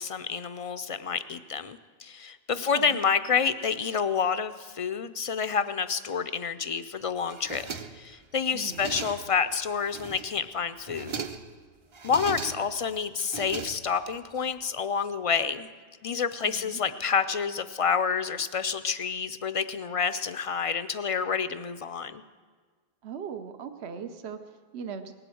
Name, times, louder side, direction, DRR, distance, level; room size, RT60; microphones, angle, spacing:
voice 1, 0.0-7.7 8.0-11.2 12.0-15.7 16.0-22.2, left 6 dB, 55° left, 12 dB, 0.4 m, -28 dB
voice 2, 2.5-3.0 8.5-8.9 16.4-16.8 23.0-25.1, right 7 dB, 80° right, 8 dB, 1.0 m, -39 dB
sound 1, 7.3-8.2 8.5-9.4 9.8-10.4 10.8-11.6 11.9-12.8 13.2-14.2, right 5 dB, 35° right, 0.6 m, -38 dB
19.0 x 7.9 x 7.7 m, 1.5 s
omnidirectional pair, 1.1 m